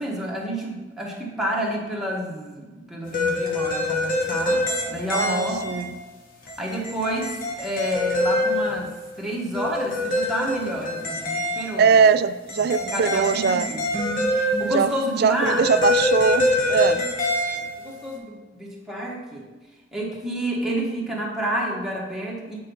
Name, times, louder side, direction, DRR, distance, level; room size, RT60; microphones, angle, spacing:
voice 1, 0.0-5.8 6.6-8.9 9.2-12.0 12.7-13.9 14.3-15.7 17.4-19.5 19.9-22.6, equal, 5° right, -3 dB, 1.3 m, -29 dB
sound 1, 3.0-5.9 6.4-9.2 9.5-12.0 12.5-15.2 15.5-18.1, left 1 dB, 50° left, 1.2 m, -25 dB
voice 2, 5.1-6.0 11.8-13.7 14.7-14.9 15.2-17.0, right 6 dB, 60° right, 13 dB, 0.3 m, -21 dB
8.6 x 4.7 x 4.0 m, 1.3 s
head